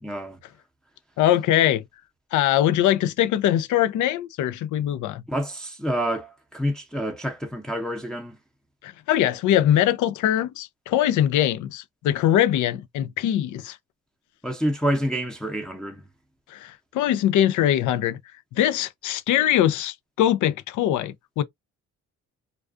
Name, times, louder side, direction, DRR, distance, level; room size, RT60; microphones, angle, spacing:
voice 1, 0.0-0.4 5.3-8.4 14.4-16.0, equal, ahead, 0.6 m, -28 dB
voice 2, 1.2-1.8 2.3-5.2 8.8-13.8 16.5-18.2 18.5-21.4, left 11 dB, 75° left, 0.5 m, -22 dB
2.3 x 2.3 x 2.4 m
cardioid pair, 90°, 30 cm